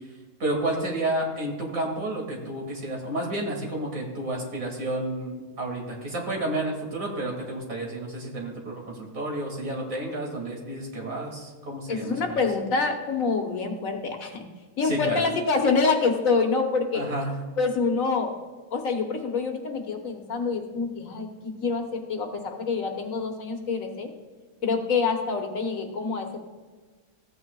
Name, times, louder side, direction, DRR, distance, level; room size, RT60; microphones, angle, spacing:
voice 1, 0.4-12.4 14.8-15.2 16.9-17.3, right 1 dB, 60° right, -1 dB, 2.5 m, -31 dB
voice 2, 11.9-14.5 14.8-17.0 17.6-18.3 18.7-24.1 24.6-26.4, left 4 dB, 65° left, 3 dB, 1.4 m, -26 dB
15.0 x 8.8 x 2.3 m, 1.4 s
omnidirectional pair, 1.6 m